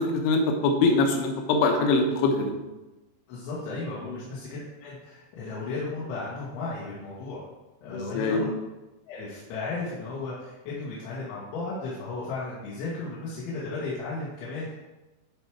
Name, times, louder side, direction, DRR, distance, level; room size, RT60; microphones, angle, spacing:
voice 1, 0.0-2.5 4.0-4.1 7.9-8.4, left 3 dB, 75° left, 3 dB, 3.0 m, -23 dB
voice 2, 3.3-7.4 7.8-8.5 9.1-14.7, left 3 dB, 90° left, -8 dB, 4.0 m, -35 dB
12.0 x 4.8 x 4.7 m, 1.1 s
omnidirectional pair, 5.1 m